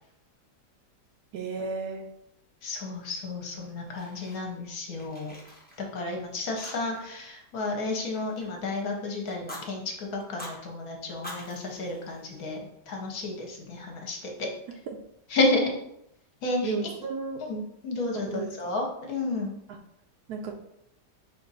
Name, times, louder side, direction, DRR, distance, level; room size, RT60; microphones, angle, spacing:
voice 1, 1.3-2.0 16.6-17.4 18.3-18.8 20.3-20.5, right 4 dB, 70° right, 4 dB, 1.0 m, -33 dB
voice 2, 2.6-5.3 5.9-12.6 12.9-14.5 15.3-15.6 16.4-16.7 17.4-19.5, left 2 dB, 65° left, 1 dB, 1.2 m, -31 dB
Fire, 3.6-4.7 4.9-6.1 6.6-7.1 7.4-8.8 9.3-9.6 10.2-10.6 11.1-12.7, left 1 dB, 15° left, 0.3 m, -45 dB
5.2 x 2.5 x 4.0 m, 0.77 s
omnidirectional pair, 1.8 m